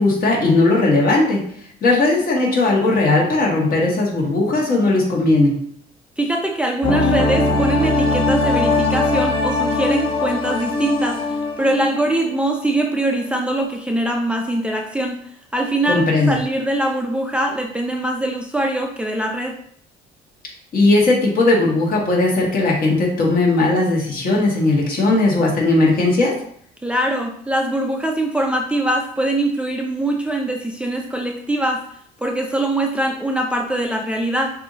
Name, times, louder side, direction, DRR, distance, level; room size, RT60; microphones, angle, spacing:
voice 1, 0.0-1.4 1.8-5.5 15.9-16.4 20.7-26.3, left 2 dB, 55° left, -3 dB, 1.8 m, -17 dB
voice 2, 6.2-15.2 15.5-19.6 26.8-31.8 32.2-34.5, right 1 dB, 5° right, 1 dB, 0.5 m, -22 dB
sound 1, 6.8-12.5 12.8-12.9, left 2 dB, 30° left, 1.1 m, -20 dB
6.5 x 2.7 x 2.8 m, 0.64 s
cardioid pair, 110°, 17 cm